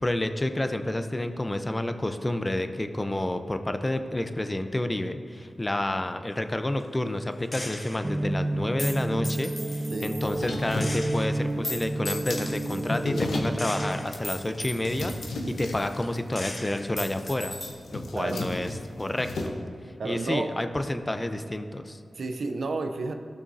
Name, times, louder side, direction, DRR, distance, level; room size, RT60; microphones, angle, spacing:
voice 1, 0.0-17.6 17.9-19.5 20.0-22.0, left 1 dB, 25° left, 8 dB, 0.7 m, -29 dB
Gunshot gunfire, 7.5-8.1 8.8-10.5 10.8-13.0 13.6-16.1 16.4-17.7, left 1 dB, 40° left, 1.4 m, -38 dB
sound 1, 8.0-13.9, right 1 dB, 35° right, 0.8 m, -30 dB
sound 2, 10.2-19.5, left 2 dB, 85° left, 0.9 m, -36 dB
voice 2, 18.1-18.4 20.0-20.6 22.1-23.1, right 3 dB, 75° right, 6 dB, 0.6 m, -31 dB
15.5 x 6.1 x 2.7 m, 2.5 s
cardioid pair, 40°, 0 cm